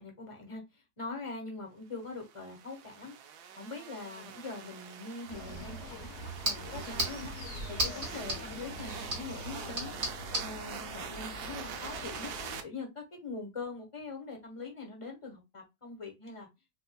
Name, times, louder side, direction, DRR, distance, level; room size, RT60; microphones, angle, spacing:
voice 1, 0.0-3.1 3.6-7.3 7.7-10.0 10.4-12.3 12.6-16.5, left 3 dB, 25° left, 1.0 m, -43 dB
sound 1, 2.2-12.6, right 8 dB, 80° right, 1.2 m, -45 dB
sound 2, 5.2-10.5, right 1 dB, 60° right, 2.7 m, -37 dB
sound 3, 5.3-12.6, left 2 dB, 50° left, 1.1 m, -45 dB
5.4 x 2.5 x 2.2 m
omnidirectional pair, 1.7 m